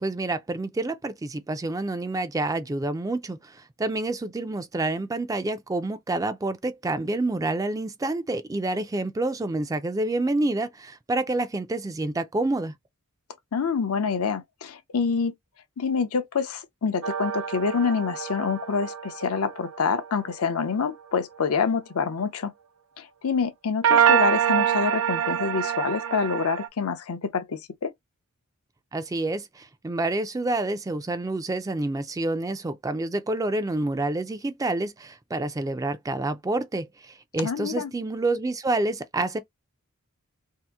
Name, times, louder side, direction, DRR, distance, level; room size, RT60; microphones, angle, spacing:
voice 1, 0.0-12.7 28.9-39.4, right 2 dB, 15° right, 0.3 m, -28 dB
voice 2, 13.5-15.3 15.8-22.5 23.0-27.9 37.4-37.9, left 5 dB, 75° left, 0.6 m, -26 dB
sound 1, 17.0-20.6 23.8-26.7, right 9 dB, 70° right, 0.5 m, -25 dB
2.8 x 2.5 x 3.4 m
head